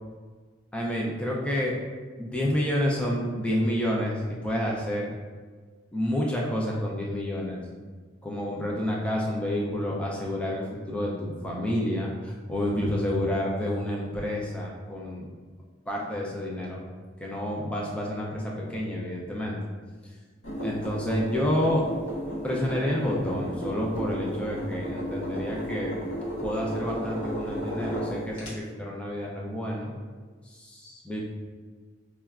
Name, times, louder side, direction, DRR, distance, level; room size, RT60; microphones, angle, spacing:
voice 1, 0.7-1.7 2.2-5.1 5.9-7.6 8.2-15.3 15.9-16.8 17.2-19.6 20.6-21.8 22.4-26.0 26.4-29.9 30.4-31.2, left 1 dB, 5° left, -3 dB, 0.3 m, -29 dB
sound 1, 20.4-28.5, equal, 90° left, 1.0 m, -33 dB
4.6 x 2.1 x 2.3 m, 1.5 s
head